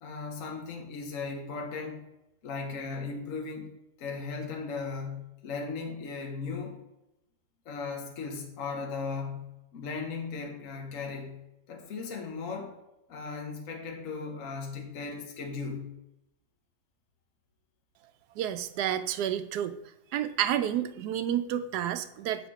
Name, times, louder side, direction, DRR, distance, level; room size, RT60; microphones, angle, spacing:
voice 1, 0.0-2.0 2.4-3.7 4.0-6.8 7.6-11.4 11.7-12.8 13.1-15.9, left 4 dB, 60° left, 1 dB, 1.3 m, -37 dB
voice 2, 18.4-19.8 20.1-22.5, right 10 dB, 90° right, 12 dB, 1.1 m, -30 dB
7.1 x 4.3 x 4.9 m, 0.88 s
omnidirectional pair, 1.6 m